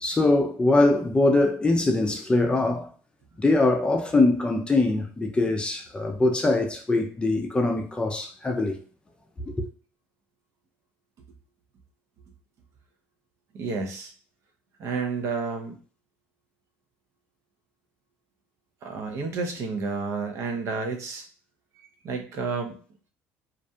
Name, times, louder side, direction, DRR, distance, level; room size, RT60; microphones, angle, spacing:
voice 1, 0.0-2.9 3.4-8.8 9.4-9.7, left 2 dB, 15° left, 0.5 m, -22 dB
voice 2, 13.5-14.1 14.8-15.8 18.8-21.3 22.0-22.8, right 4 dB, 55° right, 0.7 m, -30 dB
2.5 x 2.1 x 2.7 m
supercardioid pair, 85°, 6 cm